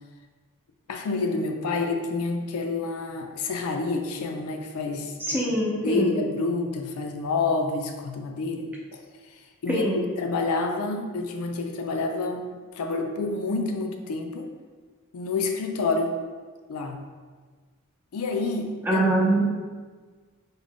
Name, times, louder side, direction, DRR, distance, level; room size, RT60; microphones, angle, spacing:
voice 1, 0.9-5.4 5.8-9.0 9.6-12.5 12.7-14.5 15.1-16.2 16.7-17.0 18.1-19.0, left 3 dB, 85° left, 4 dB, 0.4 m, -28 dB
voice 2, 5.3-6.2 9.7-10.0 18.8-19.4, right 1 dB, 10° right, -4 dB, 0.6 m, -23 dB
3.7 x 2.1 x 3.5 m, 1.5 s
head